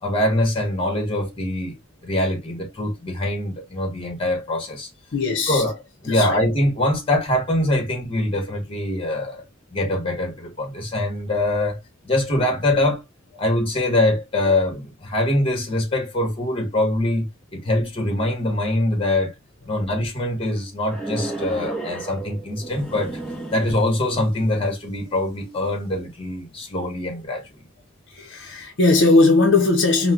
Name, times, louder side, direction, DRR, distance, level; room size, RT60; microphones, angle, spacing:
voice 1, 0.0-1.8 2.0-4.9 5.5-5.8 6.0-9.4 9.7-13.0 13.4-19.3 19.7-23.2 23.5-27.5, left 1 dB, 25° left, 1.3 m, -23 dB
voice 2, 5.1-5.6 6.1-6.4 28.1-30.1, left 3 dB, 60° left, 0.7 m, -18 dB
sound 1, 20.9-24.2, right 2 dB, ahead, 0.9 m, -33 dB
4.3 x 2.2 x 2.3 m
head